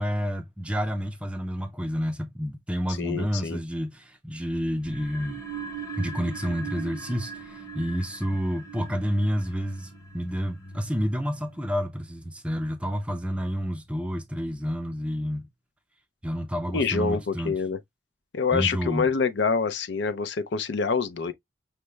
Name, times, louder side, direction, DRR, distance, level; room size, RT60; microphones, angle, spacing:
voice 1, 0.0-5.4 6.0-15.5 16.2-17.5 18.5-19.1, equal, 5° right, 0.4 m, -29 dB
voice 2, 3.0-3.6 16.7-17.8 18.3-21.3, left 5 dB, 75° left, 0.5 m, -26 dB
sound 1, 4.8-11.8, right 4 dB, 15° left, 0.7 m, -40 dB
5.7 x 2.1 x 3.2 m
head